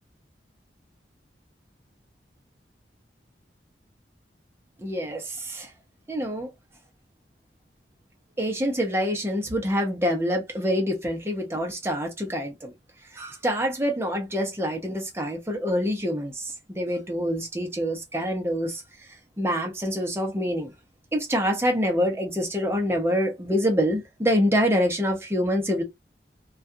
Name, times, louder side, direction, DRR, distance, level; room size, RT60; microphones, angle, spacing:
voice 1, 4.8-5.7 6.1-6.5 8.4-12.7 13.1-18.8 19.4-20.7 21.1-25.8, equal, 15° right, 0.7 m, -26 dB
2.4 x 2.3 x 2.5 m
head